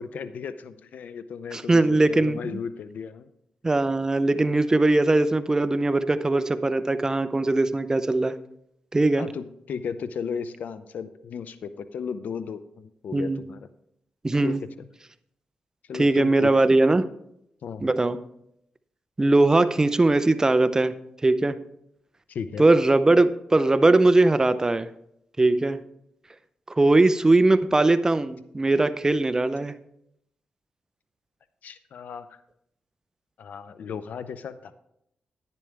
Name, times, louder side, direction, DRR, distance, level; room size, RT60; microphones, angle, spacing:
voice 1, 0.0-3.3 9.2-13.7 14.4-14.6 15.9-16.5 17.6-17.9 22.3-22.6 31.6-32.4 33.4-34.7, left 6 dB, 75° left, 13 dB, 0.6 m, -35 dB
voice 2, 1.5-2.4 3.6-8.3 8.9-9.3 13.1-13.4 14.2-14.6 15.9-17.1 17.8-18.2 19.2-20.9 21.2-21.6 22.6-24.9 25.4-25.8 26.7-29.8, right 2 dB, 20° right, 12 dB, 0.6 m, -20 dB
11.0 x 9.8 x 3.4 m, 0.76 s
cardioid pair, 75°, 3 cm